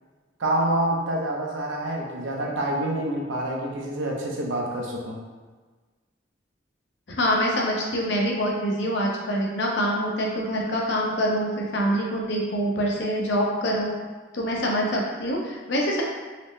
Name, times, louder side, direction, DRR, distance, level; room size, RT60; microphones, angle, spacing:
voice 1, 0.4-5.2, right 1 dB, 80° right, -1 dB, 0.7 m, -27 dB
voice 2, 7.1-13.9 14.3-16.0, equal, 60° left, -2 dB, 0.7 m, -25 dB
4.1 x 2.0 x 3.2 m, 1.4 s
head